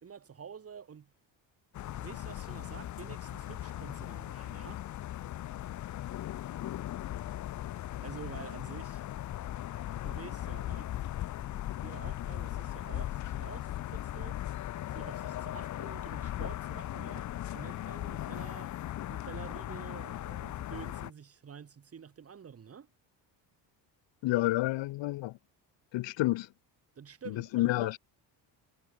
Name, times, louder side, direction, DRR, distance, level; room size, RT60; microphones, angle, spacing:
voice 1, 0.0-1.1 2.0-4.8 8.0-9.0 10.0-10.9 11.8-14.4 14.9-18.7 19.1-22.9 27.0-28.0, right 7 dB, 35° right, 3.6 m, -48 dB
sound 1, 1.7-21.1, left 13 dB, 40° left, 0.6 m, -38 dB
voice 2, 24.2-25.3 25.9-26.5 27.5-28.0, left 18 dB, 80° left, 1.8 m, -29 dB
cardioid pair, 150°, 43 cm